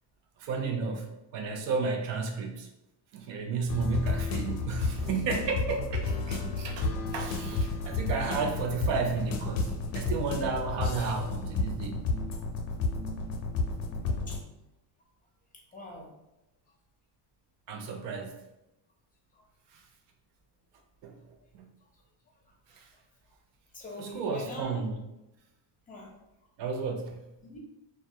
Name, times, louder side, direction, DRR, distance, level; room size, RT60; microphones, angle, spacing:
voice 1, 0.4-1.1 1.3-2.7 3.1-12.1 17.7-18.4 19.7-19.8 21.0-21.2 21.5-21.7 22.7-22.9 24.0-25.0 26.6-27.2, right 5 dB, 70° right, 4 dB, 0.5 m, -33 dB
sound 1, 3.7-14.4, left 3 dB, 75° left, 0.5 m, -32 dB
voice 2, 15.7-16.1 19.3-19.4 22.7-22.8 23.7-24.8 25.9-26.1 27.4-27.6, left 1 dB, 20° left, -1 dB, 0.5 m, -41 dB
2.2 x 2.1 x 2.7 m, 0.92 s
cardioid pair, 120°, 46 cm